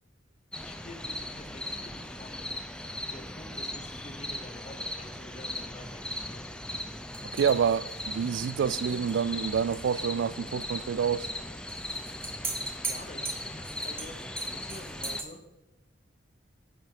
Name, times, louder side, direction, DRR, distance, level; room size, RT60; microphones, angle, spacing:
sound 1, 0.5-15.2, left 1 dB, 5° left, 0.6 m, -38 dB
voice 1, 0.6-2.6 2.9-6.5 12.6-15.4, left 2 dB, 35° left, 1.0 m, -48 dB
sound 2, 7.1-9.9 10.2-10.3 11.7-15.3, right 4 dB, 10° right, 1.1 m, -40 dB
voice 2, 7.3-11.3, right 7 dB, 75° right, 0.3 m, -28 dB
10.5 x 6.3 x 5.0 m
head